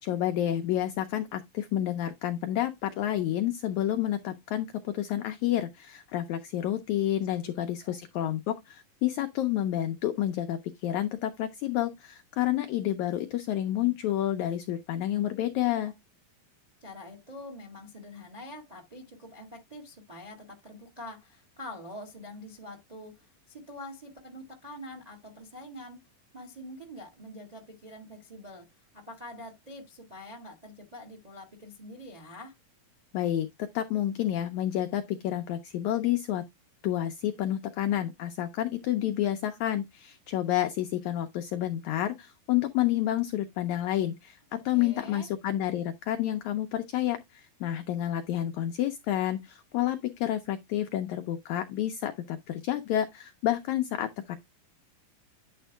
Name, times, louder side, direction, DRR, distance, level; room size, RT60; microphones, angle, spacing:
voice 1, 0.0-15.9 33.1-33.5 33.7-36.4 36.8-44.4 44.6-54.4, left 12 dB, 85° left, 1.6 m, -29 dB
voice 2, 16.8-26.0 26.3-32.5 44.5-45.3, left 1 dB, 40° right, 0.5 m, -45 dB
9.2 x 4.3 x 3.3 m
omnidirectional pair, 4.1 m